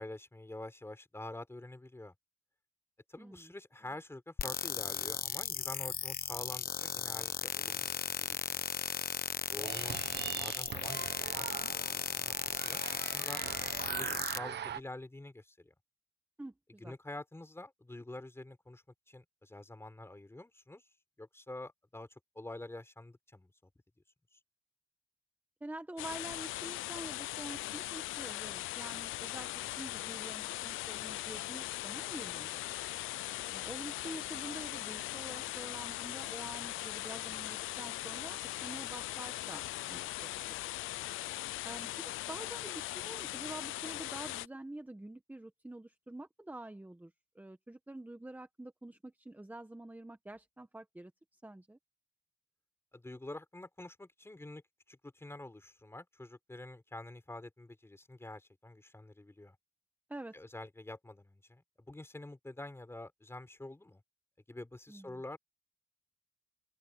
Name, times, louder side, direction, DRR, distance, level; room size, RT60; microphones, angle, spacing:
voice 1, 0.0-2.1 3.1-8.6 9.5-10.0 10.4-13.4 13.7-15.7 16.8-20.8 21.2-22.1 22.3-23.5 52.9-54.6 54.9-59.6 60.3-64.0 64.5-65.4, left 2 dB, 10° left, 4.2 m, -47 dB
voice 2, 3.2-3.5 16.4-16.9 25.6-32.6 33.5-40.3 40.6-40.8 41.6-51.8 60.1-60.4 64.9-65.2, right 1 dB, 10° right, 1.6 m, -47 dB
sound 1, 4.4-14.4, left 8 dB, 50° left, 1.2 m, -36 dB
sound 2, 9.6-14.8, right 9 dB, 60° right, 1.4 m, -42 dB
sound 3, 26.0-44.5, left 17 dB, 85° left, 0.6 m, -40 dB
open air
cardioid pair, 90°, 20 cm